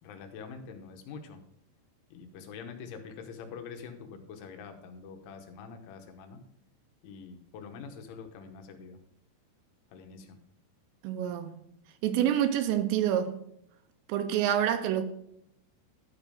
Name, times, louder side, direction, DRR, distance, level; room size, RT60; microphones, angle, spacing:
voice 1, 0.0-1.4 2.1-6.4 7.0-9.0 9.9-10.4, left 5 dB, 85° left, 3.5 m, -45 dB
voice 2, 11.0-11.6 12.0-13.4 14.1-15.0, right 10 dB, 80° right, 2.7 m, -27 dB
12.5 x 5.3 x 5.0 m
omnidirectional pair, 5.3 m